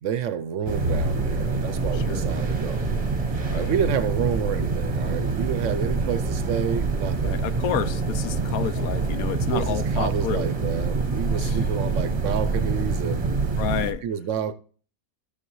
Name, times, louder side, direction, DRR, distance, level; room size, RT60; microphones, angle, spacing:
voice 1, 0.0-2.9 3.5-7.4 8.5-8.7 9.5-13.4 14.0-14.5, right 8 dB, 65° right, 0.8 m, -29 dB
sound 1, 0.7-13.9, right 3 dB, 25° right, 0.9 m, -26 dB
voice 2, 1.9-2.2 3.4-3.7 7.2-10.5 11.4-11.6 13.6-14.0, left 10 dB, 75° left, 1.0 m, -30 dB
14.0 x 6.7 x 3.0 m
omnidirectional pair, 1.6 m